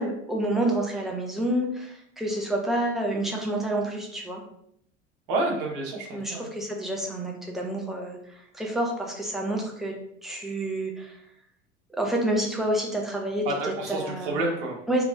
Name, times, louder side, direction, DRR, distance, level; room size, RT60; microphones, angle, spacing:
voice 1, 0.0-4.4 6.1-9.9 10.2-11.2 12.0-13.5 13.9-14.4 14.9-15.0, right 1 dB, ahead, 0 dB, 0.3 m, -28 dB
voice 2, 5.3-6.5 13.4-14.7, right 2 dB, 50° right, 0 dB, 1.0 m, -29 dB
2.9 x 2.9 x 2.6 m, 0.72 s
figure-of-eight pair, 75°, 35 cm